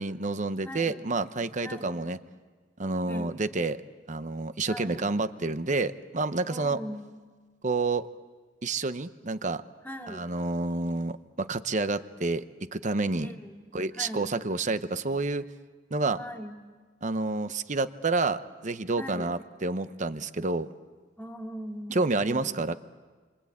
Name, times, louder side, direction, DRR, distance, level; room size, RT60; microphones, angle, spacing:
voice 1, 0.0-2.2 2.8-3.8 4.1-6.8 7.6-8.1 8.6-9.6 10.1-13.3 13.7-15.5 15.9-16.2 17.0-20.7 21.9-22.7, right 3 dB, 40° right, 12 dB, 0.9 m, -29 dB
voice 2, 0.6-1.0 1.6-1.9 3.1-3.3 4.7-5.1 6.5-7.1 9.8-10.2 13.2-13.6 13.9-14.3 16.2-16.5 19.0-19.3 21.2-22.8, equal, 10° left, 2 dB, 2.6 m, -40 dB
28.5 x 24.0 x 8.6 m, 1.4 s
head